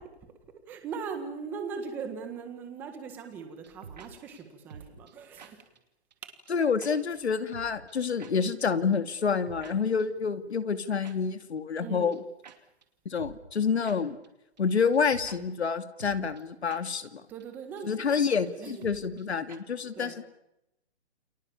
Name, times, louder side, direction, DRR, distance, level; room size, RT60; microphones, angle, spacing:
voice 1, 0.7-5.6 6.2-6.3 11.8-12.2 17.3-18.1 18.6-18.9 19.9-20.2, right 5 dB, 5° right, 6 dB, 1.5 m, -39 dB
sound 1, 3.6-4.1 4.3-4.4 4.7-5.1 5.4-5.5 5.8-5.9 6.1-6.2 6.5-6.6 6.8-6.9 7.2-7.3 7.5-8.3 8.6-8.7 8.9-9.0 9.3-9.7 10.0-10.1 11.0-11.2 11.4-11.5 11.8-11.9 12.1-12.2 12.4-12.6 12.8-12.9 13.2-13.6 13.8-14.0 14.2-14.3 14.6-14.7 14.9-15.4 15.6-15.7 16.0-16.4 16.7-16.8 17.1-17.2 17.4-17.5 17.8-17.9 18.1-18.2 18.5-18.6 18.8-19.2 19.5-19.6, right 6 dB, 40° right, 2.7 m, -48 dB
voice 2, 6.5-12.2 13.0-14.2 14.6-17.2 17.8-20.2, left 6 dB, 80° left, 10 dB, 2.7 m, -28 dB
29.5 x 26.0 x 7.2 m, 0.85 s
hypercardioid pair, 180°, 32 cm